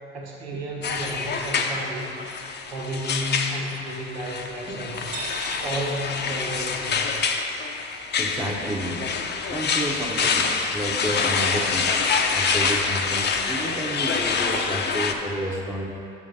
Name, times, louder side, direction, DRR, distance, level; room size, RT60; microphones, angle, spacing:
voice 1, 0.1-2.1 2.7-5.1 5.6-7.2, equal, 90° right, -2 dB, 1.4 m, -32 dB
sound 1, 0.8-15.1, left 5 dB, 35° left, 0.6 m, -26 dB
sound 2, 4.9-6.9, right 5 dB, 70° right, 1.1 m, -39 dB
voice 2, 8.2-9.1 9.5-11.9 12.3-16.0, equal, 10° right, -3 dB, 0.8 m, -31 dB
7.2 x 5.0 x 5.3 m, 2.6 s
hypercardioid pair, 75°, 31 cm